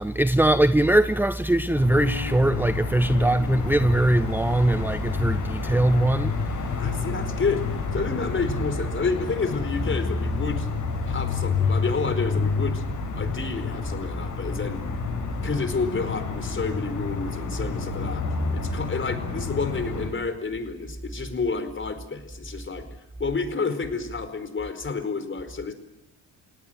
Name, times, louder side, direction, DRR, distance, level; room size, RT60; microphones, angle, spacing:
voice 1, 0.0-6.7, right 1 dB, 5° right, 0.9 m, -21 dB
sound 1, 1.7-20.1, left 4 dB, 55° left, 8.0 m, -29 dB
sound 2, 1.9-4.2, left 3 dB, 65° right, 7.6 m, -41 dB
voice 2, 3.1-3.5 6.8-7.6 7.9-10.7 11.0-12.8 13.1-14.8 15.4-18.2 18.5-22.8 23.2-25.7, left 4 dB, 30° left, 4.7 m, -29 dB
29.5 x 18.0 x 7.8 m
supercardioid pair, 70°, 37 cm